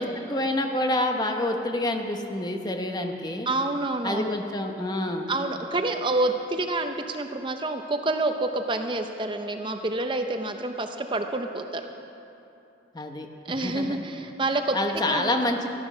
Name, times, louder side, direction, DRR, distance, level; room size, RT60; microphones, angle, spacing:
voice 1, 0.0-3.5 4.0-5.3 12.9-14.0 14.7-15.7, left 1 dB, 25° left, 4 dB, 1.0 m, -28 dB
voice 2, 3.5-4.3 5.3-11.8 13.4-15.3, right 2 dB, 25° right, 6 dB, 0.6 m, -28 dB
14.0 x 12.5 x 6.2 m, 2.8 s
head